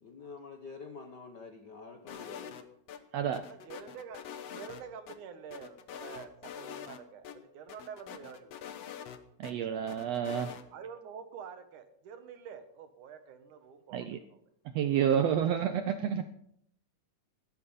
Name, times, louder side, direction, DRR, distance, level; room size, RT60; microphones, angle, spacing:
voice 1, 0.0-2.6, left 4 dB, 85° left, 5 dB, 0.9 m, -47 dB
sound 1, 2.1-3.0 3.3-5.2 5.5-7.0 7.2-7.4 7.7-9.5 9.9-10.6, left 8 dB, 60° left, 1.8 m, -45 dB
voice 2, 3.4-4.2 4.5-8.6 10.7-14.4, right 7 dB, 70° right, 8 dB, 2.6 m, -47 dB
voice 3, 9.4-10.5 13.9-14.2 14.7-16.3, right 9 dB, 85° right, 9 dB, 1.4 m, -29 dB
15.5 x 12.5 x 5.5 m, 0.72 s
omnidirectional pair, 3.8 m